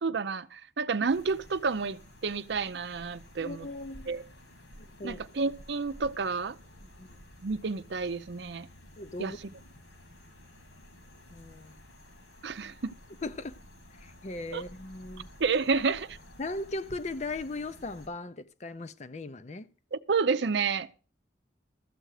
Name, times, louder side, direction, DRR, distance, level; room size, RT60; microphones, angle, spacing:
voice 1, 0.0-3.7 4.1-4.2 5.0-6.5 7.4-8.7 9.2-9.3 12.4-12.9 14.5-14.6 15.4-16.2 19.9-20.9, right 4 dB, 70° right, 0.6 m, -30 dB
sound 1, 1.0-18.1, equal, 80° left, 2.7 m, -52 dB
voice 2, 3.4-4.1 5.0-5.2 7.0-7.2 9.0-9.4 11.3-11.8 13.2-13.5 14.0-15.3 16.4-19.7, left 2 dB, 40° left, 0.5 m, -38 dB
13.5 x 7.8 x 4.8 m
head